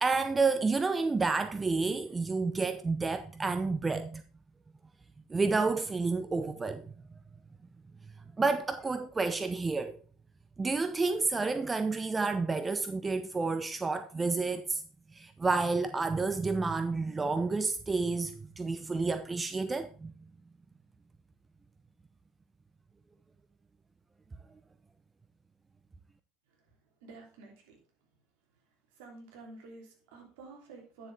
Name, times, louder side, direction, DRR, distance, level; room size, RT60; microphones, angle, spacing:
voice 1, 0.0-4.2 5.3-6.9 8.4-10.0 10.6-14.8 15.1-20.1, right 3 dB, 20° right, 0.6 m, -30 dB
voice 2, 27.0-27.7 29.0-31.1, right 3 dB, 65° right, 3.2 m, -50 dB
9.9 x 7.1 x 3.4 m
figure-of-eight pair, 70°, 0 cm